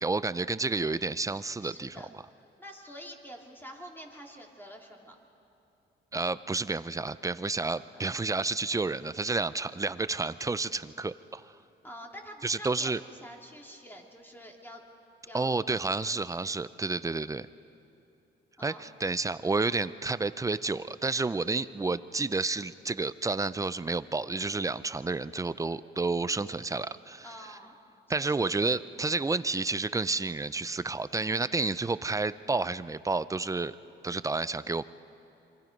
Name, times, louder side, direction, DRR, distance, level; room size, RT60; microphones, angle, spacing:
voice 1, 0.0-2.0 6.1-11.5 12.4-13.0 15.3-17.5 18.6-27.3 28.1-33.8 34.0-34.8, right 3 dB, 15° right, 15 dB, 0.5 m, -30 dB
voice 2, 1.6-2.1 2.6-5.2 7.9-8.1 11.8-14.8 15.3-15.5 18.6-18.9 27.2-27.7 28.2-28.4, equal, 10° left, 0 dB, 2.9 m, -47 dB
27.0 x 24.0 x 5.3 m, 2.7 s
cardioid pair, 90°, 20 cm